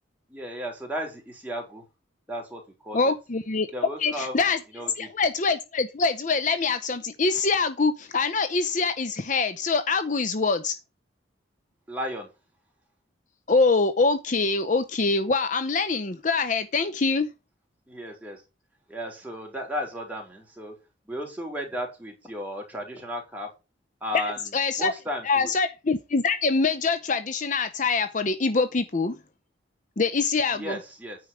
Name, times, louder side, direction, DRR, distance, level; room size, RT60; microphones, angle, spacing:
voice 1, 0.3-1.8 2.3-3.2 3.7-4.4 4.7-5.1 11.9-12.3 17.9-18.4 18.9-20.8 21.1-23.5 24.0-25.5 30.5-31.2, equal, 10° right, 3.7 m, -34 dB
voice 2, 2.9-4.6 5.0-10.7 13.5-17.3 24.5-24.9 25.2-29.2 30.0-30.8, left 4 dB, 40° left, 0.6 m, -24 dB
9.5 x 4.7 x 6.0 m
head